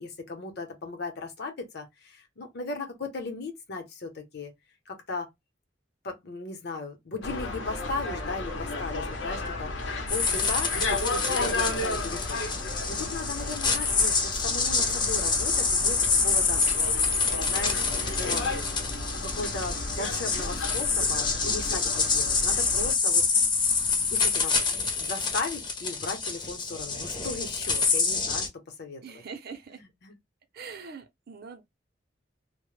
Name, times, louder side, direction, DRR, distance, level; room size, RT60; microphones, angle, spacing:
voice 1, 0.0-4.5 4.9-5.3 6.0-12.5 12.9-16.6 17.4-18.5 19.2-23.3 24.0-28.5 28.8-29.2 29.7-30.2, left 3 dB, 60° left, 0.8 m, -37 dB
sound 1, 7.2-22.9, left 2 dB, 90° left, 0.7 m, -33 dB
sound 2, 10.1-28.5, left 4 dB, 25° left, 0.6 m, -27 dB
voice 2, 29.0-29.8 30.5-31.6, right 5 dB, 55° right, 0.5 m, -42 dB
2.1 x 2.0 x 3.0 m
head